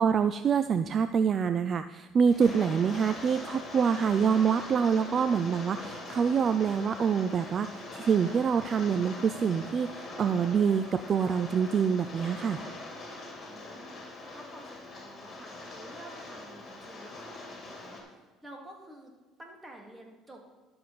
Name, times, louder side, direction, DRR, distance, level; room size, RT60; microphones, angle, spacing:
voice 1, 0.0-12.6, right 6 dB, 40° right, 11 dB, 0.4 m, -26 dB
Rain, 2.3-18.0, left 2 dB, 35° left, 2.9 m, -43 dB
voice 2, 13.5-14.0 14.3-19.1 19.4-20.4, right 1 dB, 15° right, 0 dB, 2.5 m, -50 dB
12.0 x 6.8 x 4.2 m, 1.3 s
supercardioid pair, 85°, 0 cm